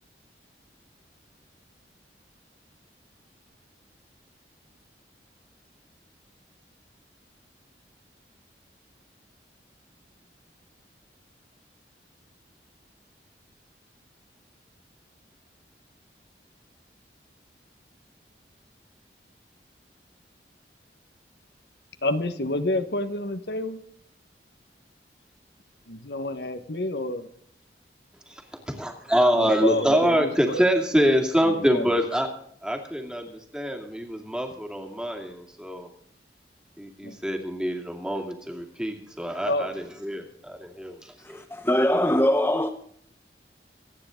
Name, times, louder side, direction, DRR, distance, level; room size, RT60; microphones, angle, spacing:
voice 1, 22.0-23.8 25.9-27.3 29.3-30.6 31.5-31.8 37.0-37.2 39.5-39.7, left 2 dB, 75° left, 1.4 m, -29 dB
voice 2, 28.3-32.3 32.6-35.9 36.8-41.4, equal, 5° right, 2.4 m, -25 dB
voice 3, 41.2-42.7, left 1 dB, 10° left, 0.8 m, -22 dB
26.0 x 9.8 x 3.8 m
head